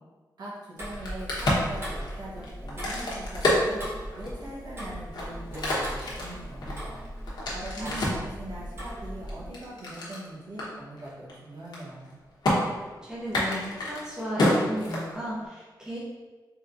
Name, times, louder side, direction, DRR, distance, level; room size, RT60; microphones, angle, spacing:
voice 1, 0.4-7.1 7.5-12.2, right 1 dB, 60° right, -7 dB, 1.1 m, -41 dB
Tick-tock, 0.8-9.5, equal, 35° right, 1.1 m, -39 dB
Crack, 0.9-4.5 5.0-8.3 8.9-10.2 10.6-10.7 11.0-11.3 11.6-12.1 12.4-12.6 13.2-15.5, left 1 dB, 65° left, 1.1 m, -28 dB
voice 2, 7.6-8.2 12.7-16.0, equal, 10° right, -7 dB, 0.9 m, -35 dB
3.9 x 3.9 x 2.6 m, 1.3 s
wide cardioid pair, 175°, 8 cm